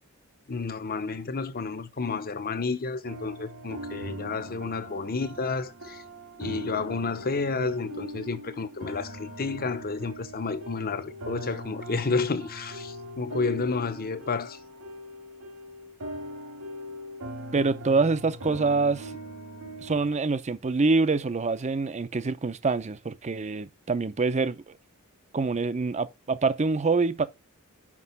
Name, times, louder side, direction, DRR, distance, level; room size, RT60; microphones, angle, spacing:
voice 1, 0.5-6.0 6.4-14.6, left 4 dB, 40° left, 0.8 m, -31 dB
sound 1, 3.1-20.1, equal, 80° right, 2.3 m, -41 dB
voice 2, 17.5-19.1 19.8-24.8 25.3-27.2, right 3 dB, 30° right, 0.6 m, -25 dB
6.1 x 5.4 x 5.4 m
head